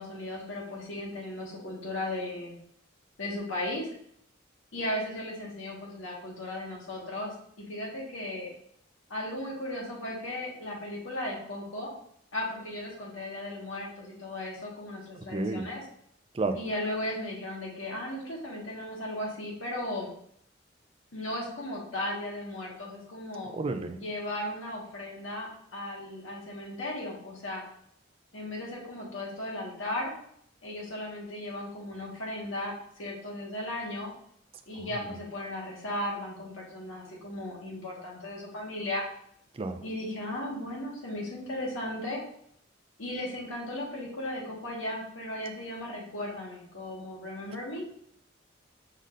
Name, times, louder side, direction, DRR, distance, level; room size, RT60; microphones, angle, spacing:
voice 1, 0.0-2.5 3.2-3.9 4.7-8.5 9.1-11.9 12.3-15.8 16.5-20.1 21.1-23.5 23.9-27.6 28.3-30.1 30.6-34.1 34.7-39.0 39.8-42.2 43.0-47.8, left 1 dB, 90° left, -2 dB, 1.5 m, -36 dB
voice 2, 15.2-15.7 16.3-16.6 23.5-24.0 34.9-35.1 39.5-39.8, right 3 dB, 30° right, 7 dB, 0.4 m, -31 dB
5.1 x 4.1 x 2.5 m, 0.68 s
head